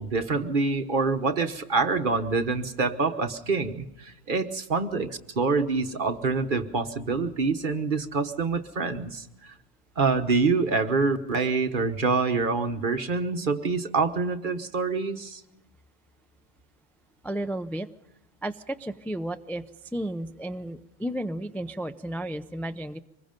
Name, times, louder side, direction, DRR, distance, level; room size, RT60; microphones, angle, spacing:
voice 1, 0.0-9.5 10.0-15.4, right 4 dB, 45° right, 8 dB, 1.3 m, -26 dB
voice 2, 17.2-17.9 18.4-19.6 19.9-23.0, right 1 dB, ahead, 9 dB, 0.4 m, -33 dB
25.5 x 21.5 x 5.2 m, 0.92 s
omnidirectional pair, 1.3 m